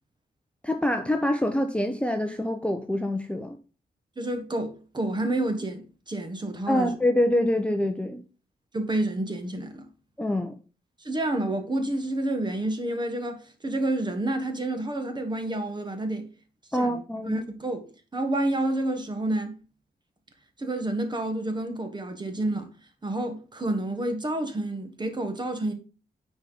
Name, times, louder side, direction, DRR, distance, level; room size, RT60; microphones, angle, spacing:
voice 1, 0.6-3.6 6.7-8.2 10.2-10.5 16.7-17.4, left 1 dB, 5° left, 0.7 m, -25 dB
voice 2, 4.2-7.0 8.7-9.9 11.0-16.3 16.7-17.8 18.1-19.6 20.6-22.7 23.0-25.7, right 1 dB, 25° right, 1.4 m, -29 dB
9.5 x 4.3 x 4.0 m
wide cardioid pair, 120°, 17 cm